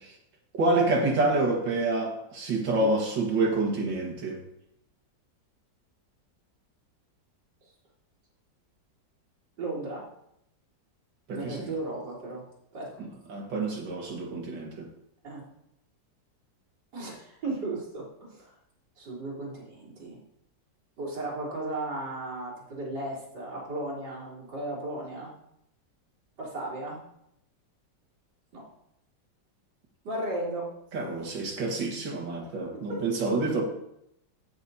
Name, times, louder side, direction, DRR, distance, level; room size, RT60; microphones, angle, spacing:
voice 1, 0.5-4.4 11.3-11.7 13.3-14.9 30.9-33.6, right 2 dB, 90° right, 0 dB, 2.4 m, -27 dB
voice 2, 9.6-10.1 11.3-12.4 12.7-12.9 15.2-15.4 16.9-18.5 19.0-20.2 21.0-25.3 26.4-27.0 28.5-28.6 30.0-30.7 31.3-31.4 32.7-33.0, right 2 dB, 70° right, -9 dB, 4.0 m, -35 dB
16.0 x 6.1 x 2.7 m, 0.77 s
omnidirectional pair, 1.9 m